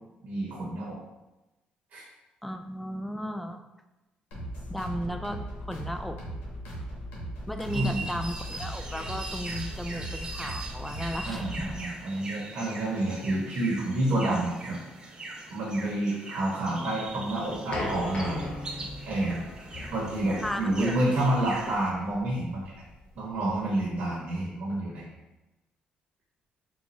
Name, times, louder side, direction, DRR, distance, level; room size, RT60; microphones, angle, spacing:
voice 1, 0.2-1.0 1.9-2.1 7.7-8.0 11.2-14.8 15.5-18.5 19.1-19.4 19.9-22.7 23.2-25.1, right 1 dB, 70° right, -5 dB, 1.0 m, -29 dB
voice 2, 2.4-3.7 4.7-6.2 7.5-11.7 20.4-21.0, equal, 5° left, 6 dB, 0.3 m, -35 dB
sound 1, 4.3-11.8, right 1 dB, 90° left, 1.1 m, -38 dB
sound 2, 7.6-21.9, right 2 dB, 30° right, 0.6 m, -41 dB
sound 3, 17.1-23.9, left 2 dB, 40° left, 0.7 m, -39 dB
3.9 x 2.3 x 3.0 m, 1.0 s
cardioid pair, 100°, 3 cm